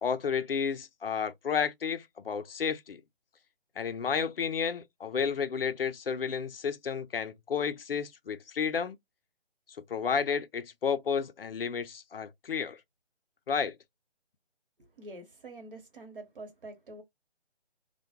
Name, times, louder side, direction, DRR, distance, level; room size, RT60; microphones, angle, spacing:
voice 1, 0.0-3.0 3.8-9.0 9.9-12.8 13.5-13.8, left 6 dB, 60° left, 0.4 m, -31 dB
voice 2, 14.9-17.0, right 2 dB, 55° right, 1.1 m, -46 dB
2.2 x 2.2 x 2.8 m
figure-of-eight pair, 150°, 33 cm